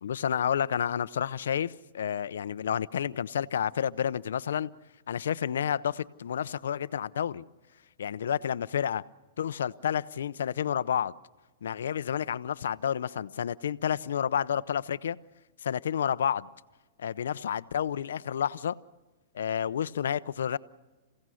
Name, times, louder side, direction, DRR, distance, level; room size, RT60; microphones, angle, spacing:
voice 1, 0.0-4.7 5.1-7.4 8.0-9.0 9.4-11.1 11.6-15.2 15.6-16.5 17.0-18.8 19.3-20.6, left 9 dB, 85° left, 16 dB, 0.6 m, -30 dB
28.0 x 16.5 x 6.4 m, 1.2 s
hypercardioid pair, 150°, 0 cm